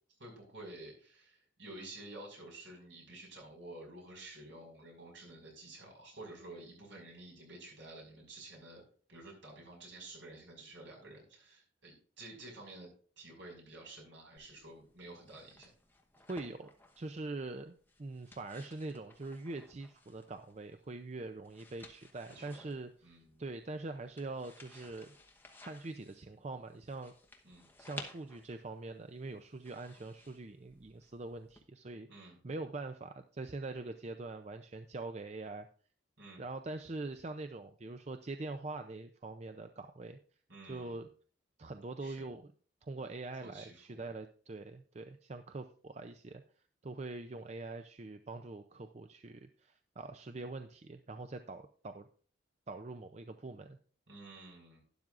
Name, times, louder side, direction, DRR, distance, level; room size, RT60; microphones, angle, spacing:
voice 1, 0.2-8.8 9.1-12.9 13.2-15.7 22.3-22.7 23.0-23.4 24.7-24.9 27.4-27.7 32.1-32.4 36.2-36.4 40.5-41.0 42.0-42.3 43.4-44.1 54.1-54.8, right 2 dB, 70° right, 0 dB, 5.4 m, -51 dB
sound 1, 14.4-31.6, left 2 dB, 10° left, 1.0 m, -57 dB
voice 2, 16.3-16.7 17.0-17.7 18.0-25.1 25.6-27.1 27.8-35.7 36.4-40.2 40.6-41.1 41.6-42.5 42.8-46.4 46.8-52.1 52.7-53.8, right 2 dB, 35° right, 7 dB, 0.5 m, -43 dB
12.0 x 11.0 x 2.5 m, 0.43 s
head